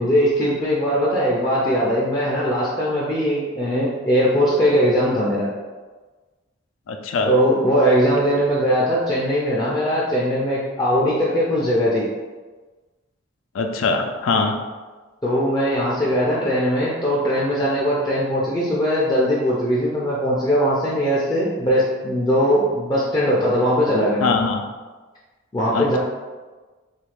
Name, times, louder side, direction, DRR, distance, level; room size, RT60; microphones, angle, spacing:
voice 1, 0.0-5.5 7.3-12.1 15.2-24.3 25.5-26.0, equal, 20° left, -6 dB, 0.4 m, -20 dB
voice 2, 6.9-7.3 13.5-14.5 24.2-24.6 25.7-26.0, left 4 dB, 85° left, 5 dB, 0.4 m, -22 dB
3.1 x 2.4 x 3.3 m, 1.3 s
head